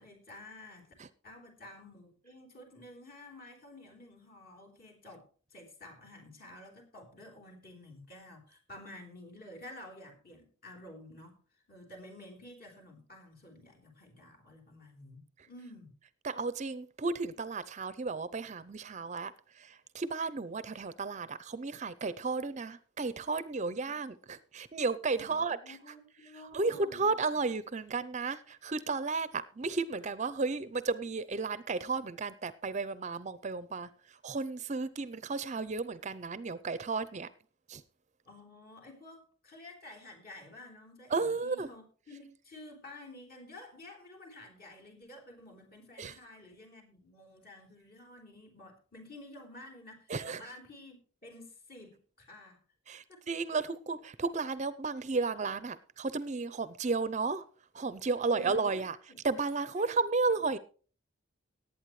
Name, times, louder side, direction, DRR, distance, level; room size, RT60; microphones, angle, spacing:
voice 1, 0.0-0.9 1.2-11.4 11.7-15.2 15.5-15.9 25.1-27.1 38.3-52.6 53.1-53.2 58.3-58.8 59.1-59.2 59.7-59.9, left 1 dB, 45° left, 3.9 m, -51 dB
voice 2, 16.2-25.8 26.5-33.9 34.2-37.3 37.7-37.8 41.1-41.7 46.0-46.1 50.1-50.4 52.9-57.5 57.7-59.0 59.2-60.6, right 4 dB, 35° right, 0.5 m, -33 dB
18.5 x 8.8 x 3.2 m
head